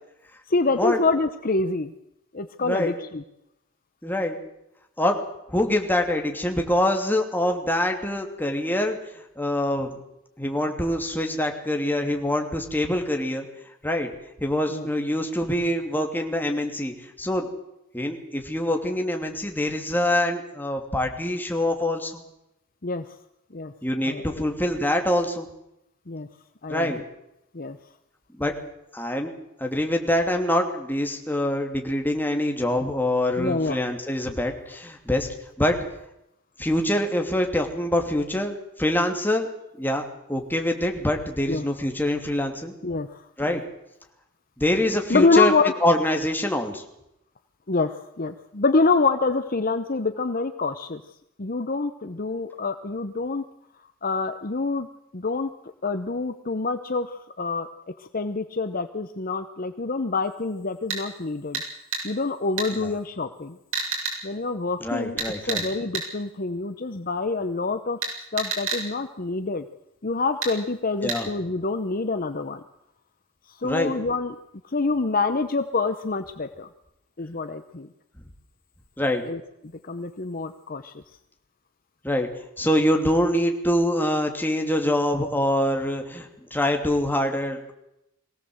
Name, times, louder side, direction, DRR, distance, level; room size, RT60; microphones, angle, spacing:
voice 1, 0.5-1.9 2.3-3.2 14.7-14.9 22.8-23.1 23.5-23.7 24.0-24.2 26.1-26.3 26.6-27.0 27.5-27.8 33.4-33.8 41.5-41.6 42.8-43.6 45.1-45.8 47.7-51.0 51.4-53.4 54.0-54.9 55.1-55.5 55.8-57.7 58.0-61.6 62.0-63.6 64.2-65.2 65.5-68.0 68.3-69.6 70.0-72.6 73.5-74.3 74.6-76.7 77.2-77.9 79.3-79.4 79.9-80.9, left 3 dB, 45° left, 9 dB, 0.9 m, -26 dB
voice 2, 2.6-3.0 4.0-4.4 5.0-5.2 5.5-9.0 9.4-10.0 10.4-13.5 13.8-14.1 14.4-17.5 17.9-22.2 23.8-25.5 26.7-27.0 28.3-28.5 28.9-29.3 29.6-35.3 35.6-35.8 36.6-39.5 39.8-40.0 40.3-42.7 43.4-43.6 44.6-45.5 45.8-46.8 62.7-62.9 64.8-65.7 71.0-71.3 73.6-73.9 79.0-79.2 82.0-82.3 82.6-87.7, left 1 dB, 10° left, 3 dB, 2.8 m, -25 dB
sound 1, 60.9-61.0 61.5-61.7 61.9-62.0 62.6-62.7 63.7-64.2 65.2-65.7 65.9-66.1 68.0-68.8 70.4-70.5 71.1-71.2, right 4 dB, 70° right, 7.6 m, -28 dB
23.0 x 17.0 x 7.9 m, 0.83 s
head